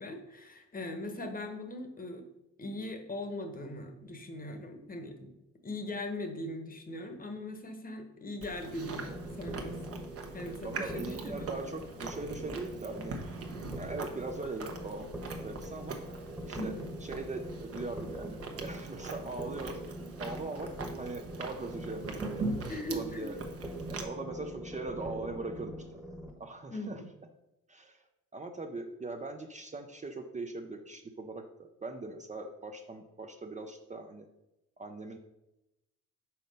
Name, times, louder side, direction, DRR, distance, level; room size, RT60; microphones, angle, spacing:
voice 1, 0.0-2.2 2.6-5.3 5.6-10.0 10.3-11.5 16.5-16.9 22.7-23.3 26.7-27.1, left 1 dB, 30° left, 6 dB, 1.1 m, -40 dB
Chewing mastication, 8.4-24.0, right 3 dB, 50° right, 1.0 m, -42 dB
sound 1, 8.8-26.3, right 1 dB, 5° right, 1.1 m, -43 dB
voice 2, 10.6-13.2 13.8-16.0 16.5-19.8 20.2-22.4 22.9-23.4 23.9-26.0 26.4-27.0 27.7-28.1 28.3-34.3 34.8-35.2, right 3 dB, 25° right, 5 dB, 0.6 m, -41 dB
5.7 x 4.1 x 5.3 m, 0.92 s
cardioid pair, 90°, 30 cm